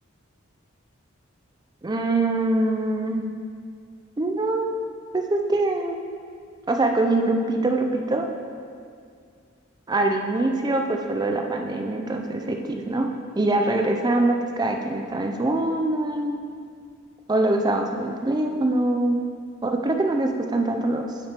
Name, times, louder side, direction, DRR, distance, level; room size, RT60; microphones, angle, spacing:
voice 1, 1.8-3.2 4.2-4.7 5.1-6.0 6.7-8.3 9.9-13.1 13.4-16.4 17.3-19.2 19.6-21.1, right 2 dB, 20° right, 3 dB, 0.4 m, -23 dB
8.7 x 4.3 x 3.4 m, 2.2 s
head